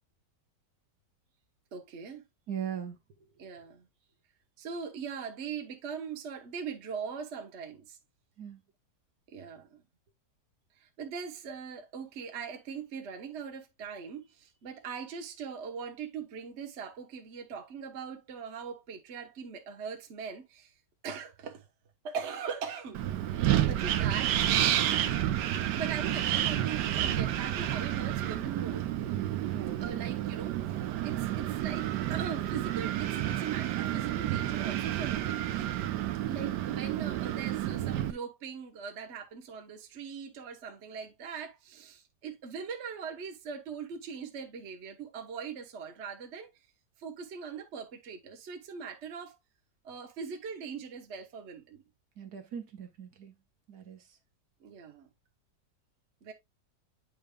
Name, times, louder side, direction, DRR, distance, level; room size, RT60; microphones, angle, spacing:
voice 1, 1.7-2.2 3.4-3.9 4.6-8.0 9.3-9.8 10.8-20.7 21.0-21.7 22.0-23.0 23.6-25.5 25.8-28.9 29.8-35.7 36.2-46.5 47.0-49.4 49.8-51.8 54.6-55.1 56.2-56.3, right 6 dB, 50° right, 1.1 m, -41 dB
voice 2, 2.5-3.0 8.4-8.6 29.5-30.0 52.2-53.3 53.7-54.0, right 8 dB, 65° right, 1.5 m, -40 dB
Wind, 22.9-38.1, right 12 dB, 85° right, 1.3 m, -30 dB
8.8 x 5.2 x 2.2 m
omnidirectional pair, 1.8 m